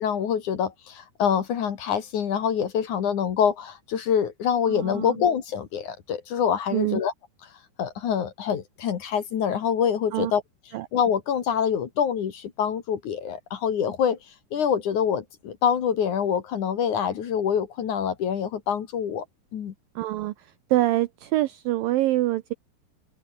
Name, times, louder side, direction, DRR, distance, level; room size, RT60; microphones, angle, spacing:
voice 1, 0.0-7.1 7.8-10.4 10.9-14.2 14.5-19.2 19.5-19.7, left 8 dB, 55° left, 2.8 m, -25 dB
voice 2, 4.7-5.2 6.7-7.0 10.1-10.3 10.7-10.9 20.0-22.5, right 16 dB, 90° right, 2.0 m, -25 dB
open air
omnidirectional pair, 5.0 m